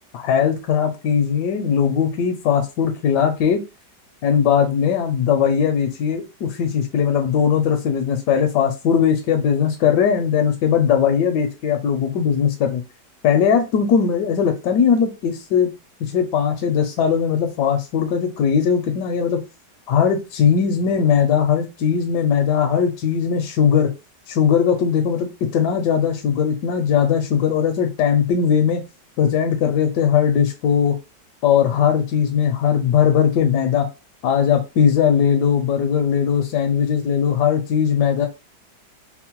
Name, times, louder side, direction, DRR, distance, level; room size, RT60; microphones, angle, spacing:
voice 1, 0.1-3.6 4.2-12.8 13.2-15.7 16.0-19.4 19.9-23.9 24.3-28.8 29.2-31.0 31.4-33.9 34.2-38.3, left 7 dB, 80° left, 4 dB, 1.2 m, -19 dB
4.2 x 2.1 x 2.9 m, 0.28 s
omnidirectional pair, 1.9 m